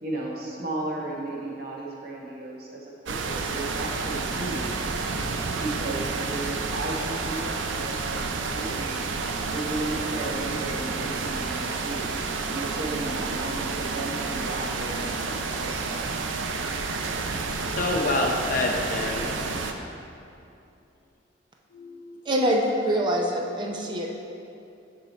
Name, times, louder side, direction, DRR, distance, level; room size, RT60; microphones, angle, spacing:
voice 1, 0.0-4.8 5.6-9.0 9.5-12.0 12.4-16.0, right 2 dB, 50° right, -3 dB, 1.2 m, -34 dB
sound 1, 3.1-19.7, right 4 dB, 75° right, 0.5 m, -30 dB
voice 2, 17.3-19.3 21.8-22.2 23.9-24.0, left 2 dB, 45° left, 0 dB, 0.8 m, -28 dB
voice 3, 22.3-24.1, equal, 25° right, 0 dB, 0.5 m, -24 dB
6.9 x 4.9 x 4.2 m, 2.6 s
head